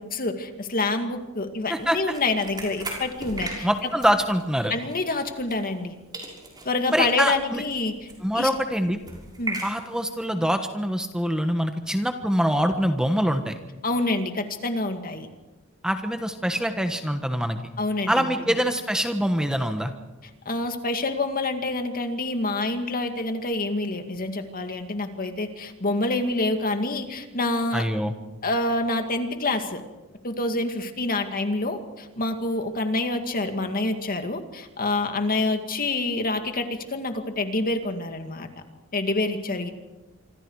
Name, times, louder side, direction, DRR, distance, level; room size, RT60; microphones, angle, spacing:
voice 1, 0.0-3.7 4.7-5.9 6.6-8.1 8.3-8.5 9.4-9.6 13.8-15.3 17.8-18.5 20.5-27.9 28.4-29.8 30.2-38.5 38.9-39.7, left 2 dB, 40° left, 6 dB, 2.2 m, -27 dB
sound 1, 1.7-5.9 6.1-10.2, right 2 dB, 20° right, 6.4 m, -39 dB
voice 2, 3.6-4.7 6.9-7.6 8.2-9.0 9.6-13.5 15.8-17.6 18.1-19.9 27.7-28.1, equal, 5° right, 6 dB, 1.3 m, -24 dB
27.0 x 25.0 x 4.8 m, 1.1 s
head